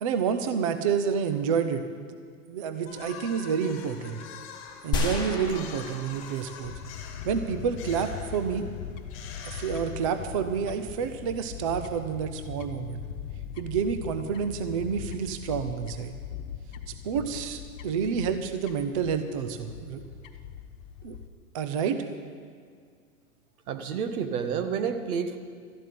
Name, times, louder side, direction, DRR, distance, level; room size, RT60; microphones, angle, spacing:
voice 1, 0.0-2.2 2.5-4.2 4.8-6.7 7.2-8.6 9.5-13.0 13.6-16.2 16.9-20.0 21.0-21.1 21.5-22.1, right 7 dB, 25° right, 9 dB, 0.3 m, -29 dB
sound 1, 2.8-10.5, left 7 dB, 30° left, 1.9 m, -46 dB
sound 2, 4.9-6.9 7.2-7.3, left 3 dB, 10° left, 1.8 m, -31 dB
Fowl / Bird, 6.6-21.3, left 8 dB, 55° left, 1.2 m, -40 dB
voice 2, 23.7-25.4, right 7 dB, 65° right, 8 dB, 1.5 m, -29 dB
13.0 x 7.3 x 9.9 m, 2.1 s
hypercardioid pair, 140°, 46 cm